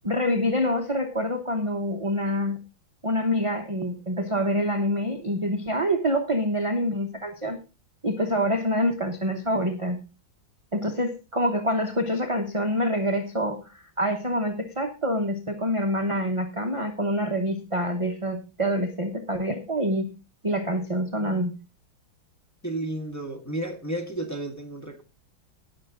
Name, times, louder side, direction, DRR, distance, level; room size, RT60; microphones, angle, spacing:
voice 1, 0.0-2.6 3.0-7.6 8.0-10.0 10.7-20.1 20.4-21.5, equal, 25° right, 4 dB, 0.6 m, -26 dB
voice 2, 22.6-25.0, right 1 dB, 10° left, 2 dB, 1.3 m, -32 dB
18.0 x 6.5 x 3.8 m, 0.29 s
omnidirectional pair, 2.2 m